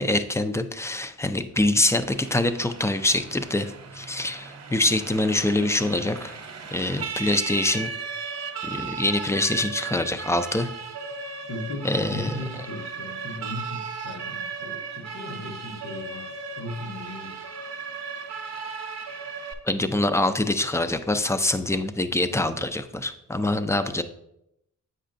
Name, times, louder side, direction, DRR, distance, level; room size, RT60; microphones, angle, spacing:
voice 1, 0.0-6.4 6.7-7.9 8.6-10.7 11.8-12.4 19.7-24.0, left 2 dB, 10° left, 9 dB, 0.3 m, -25 dB
Siren, 1.9-19.5, right 5 dB, 50° right, 0.7 m, -36 dB
voice 2, 11.5-17.4, left 2 dB, 55° left, 1 dB, 0.9 m, -37 dB
7.9 x 5.5 x 2.5 m, 0.80 s
cardioid pair, 95°, 33 cm